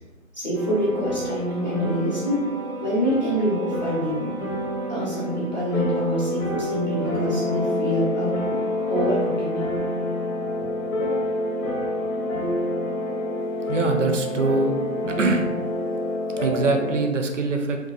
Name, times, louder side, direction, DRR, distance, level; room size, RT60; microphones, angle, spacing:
voice 1, 0.4-2.5 2.8-4.3 4.9-8.6 8.9-9.8, equal, 30° left, -8 dB, 0.6 m, -26 dB
sound 1, 0.5-17.0, left 1 dB, 80° left, 0.9 m, -28 dB
voice 2, 13.7-14.7 15.1-15.5 16.4-17.8, right 3 dB, 65° right, 5 dB, 0.5 m, -23 dB
2.6 x 2.3 x 2.5 m, 1.1 s
figure-of-eight pair, 175°, 41 cm